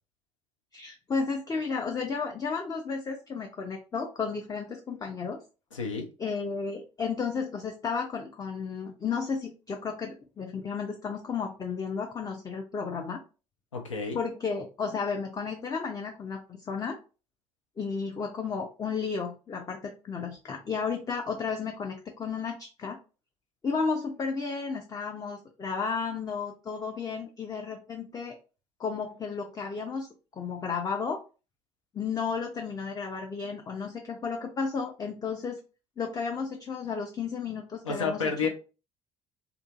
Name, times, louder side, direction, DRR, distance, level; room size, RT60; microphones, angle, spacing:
voice 1, 0.7-5.4 6.2-13.2 14.1-17.0 17.8-23.0 23.6-28.4 28.8-30.1 30.3-31.2 31.9-35.6 36.0-38.5, left 5 dB, 25° left, 3 dB, 0.5 m, -33 dB
voice 2, 5.7-6.1 13.7-14.2 37.8-38.5, left 5 dB, 85° left, 3 dB, 0.6 m, -30 dB
2.5 x 2.4 x 2.4 m, 0.33 s
figure-of-eight pair, 55°, 16 cm